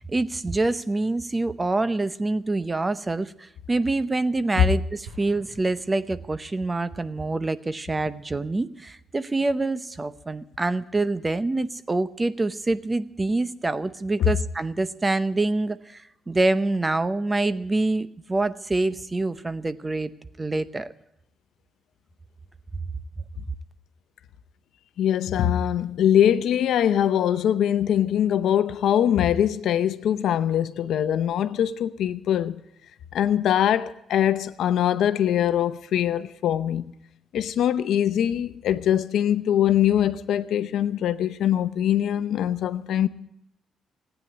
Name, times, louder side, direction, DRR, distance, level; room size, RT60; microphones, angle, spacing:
voice 1, 0.0-20.1 20.4-20.9, right 2 dB, 20° right, 0.7 m, -26 dB
Explosion, 5.0-6.9, right 2 dB, 90° right, 7.6 m, -48 dB
voice 2, 25.0-32.6 33.1-36.9 37.3-43.1, left 10 dB, 75° left, 0.7 m, -22 dB
15.5 x 9.2 x 9.5 m
cardioid pair, 90°, 0 cm